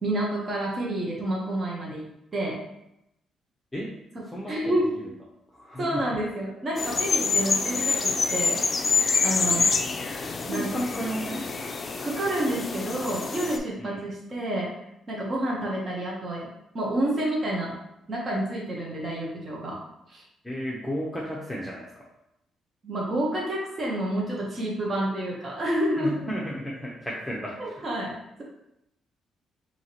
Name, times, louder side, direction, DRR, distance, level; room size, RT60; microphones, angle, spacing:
voice 1, 0.0-2.1 2.3-2.6 4.1-4.9 5.8-8.6 9.2-9.7 10.5-10.7 12.0-14.7 15.1-16.5 16.7-17.7 18.1-19.8 20.1-20.2 22.8-26.3 27.6-28.1, right 1 dB, 40° right, -3 dB, 1.0 m, -29 dB
voice 2, 4.2-4.8 5.0-5.1 5.5-6.1 9.4-9.6 10.2-11.4 13.8-14.0 20.4-22.0 26.0-27.8, equal, 10° left, -4 dB, 0.7 m, -33 dB
sound 1, 6.8-13.6, left 4 dB, 35° left, 0.4 m, -26 dB
4.6 x 2.8 x 2.9 m, 0.84 s
cardioid pair, 90°, 0 cm